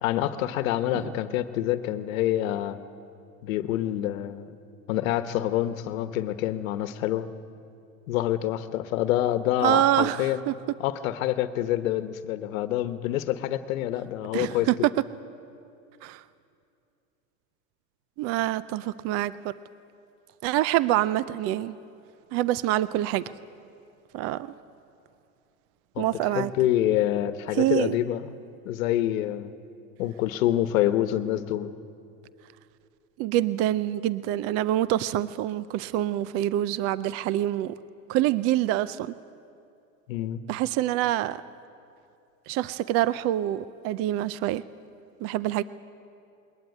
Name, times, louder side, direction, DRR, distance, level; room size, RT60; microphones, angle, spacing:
voice 1, 0.0-2.8 3.4-4.6 4.9-7.3 8.1-10.4 10.8-14.7 26.0-28.3 28.6-29.5 30.0-31.7 40.1-40.4, left 13 dB, 75° left, 12 dB, 1.2 m, -27 dB
voice 2, 9.6-10.5 14.3-14.7 16.0-16.2 18.2-19.5 20.4-21.8 22.3-23.3 24.1-24.5 26.0-26.5 27.6-28.0 33.2-37.7 38.1-39.1 40.5-41.4 42.5-44.6 45.2-45.6, right 14 dB, 35° right, 18 dB, 0.5 m, -26 dB
21.0 x 19.5 x 9.5 m, 2.5 s
supercardioid pair, 135°, 41 cm